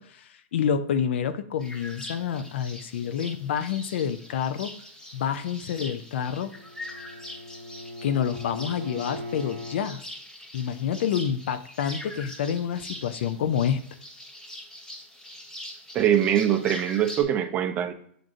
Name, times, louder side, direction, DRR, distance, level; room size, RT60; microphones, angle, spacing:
voice 1, 0.0-4.7 5.1-6.5 8.0-10.0 10.5-13.8, left 8 dB, 65° left, 10 dB, 0.4 m, -28 dB
sound 1, 1.6-17.2, left 1 dB, 10° left, 1.0 m, -43 dB
Bowed string instrument, 6.1-9.9, left 2 dB, 70° right, 0.6 m, -40 dB
voice 2, 15.9-17.9, right 10 dB, 20° right, 6 dB, 0.4 m, -23 dB
7.5 x 2.5 x 2.5 m, 0.62 s
hypercardioid pair, 150°, 7 cm